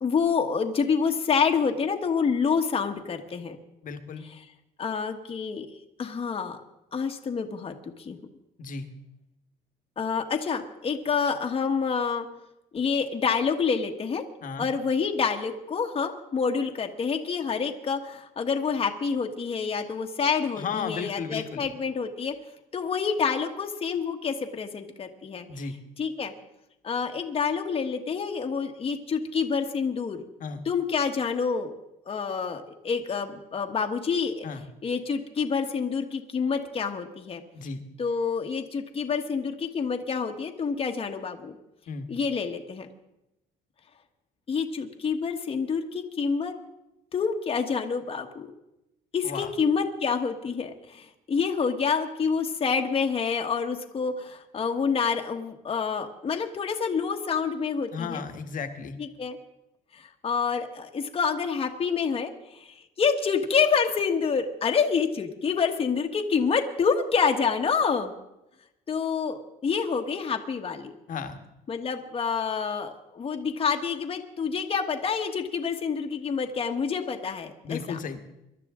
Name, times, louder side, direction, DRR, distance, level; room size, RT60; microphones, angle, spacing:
voice 1, 0.0-3.6 4.4-4.5 4.8-5.7 6.0-6.6 6.9-8.2 10.0-12.2 12.7-14.2 14.6-22.3 22.7-25.4 26.0-26.3 26.8-30.3 30.6-31.7 32.1-34.5 34.8-37.4 38.0-41.6 42.1-42.9 44.5-46.5 47.1-48.5 49.1-58.2 59.0-59.4 59.9-68.1 68.9-70.9 71.7-78.0, left 5 dB, 35° left, 3 dB, 1.4 m, -27 dB
voice 2, 3.8-4.2 8.6-8.9 14.4-14.7 20.6-21.7 25.5-25.8 30.4-30.6 34.4-34.6 37.5-37.8 41.9-42.1 49.2-49.5 57.9-58.9 71.1-71.4 77.6-78.2, left 5 dB, 50° left, 8 dB, 1.5 m, -34 dB
23.5 x 12.0 x 3.7 m, 0.90 s
cardioid pair, 110°, 17 cm